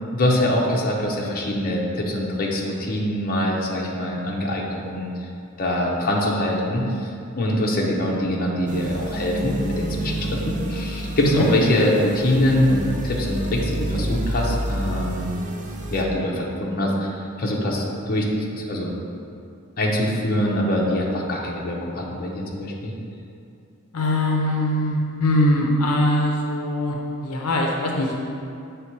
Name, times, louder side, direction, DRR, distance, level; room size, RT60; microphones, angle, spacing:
voice 1, 0.1-5.1 5.6-7.1 7.4-15.4 15.9-18.9 19.8-22.9, left 1 dB, 45° left, -2 dB, 0.8 m, -23 dB
sound 1, 8.7-16.0, right 1 dB, 35° right, 0.5 m, -29 dB
voice 2, 23.9-28.1, left 1 dB, 80° left, 0 dB, 0.7 m, -22 dB
7.1 x 3.4 x 4.6 m, 2.5 s
head